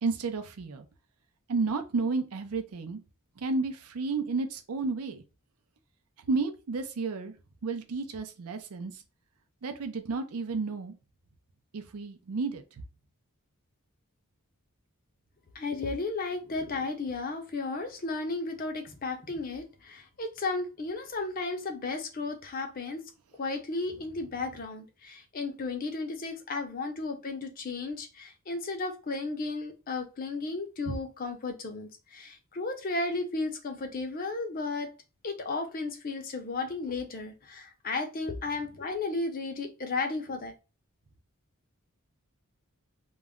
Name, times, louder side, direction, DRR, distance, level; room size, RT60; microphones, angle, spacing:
voice 1, 0.0-0.9 1.5-3.0 3.4-5.2 6.3-7.3 7.6-8.9 9.6-10.9 11.7-12.6 30.9-31.0, right 4 dB, 85° right, 0.5 m, -31 dB
voice 2, 15.5-23.0 23.4-34.9 35.2-40.5, left 3 dB, 40° left, 0.5 m, -34 dB
2.2 x 2.0 x 3.5 m
head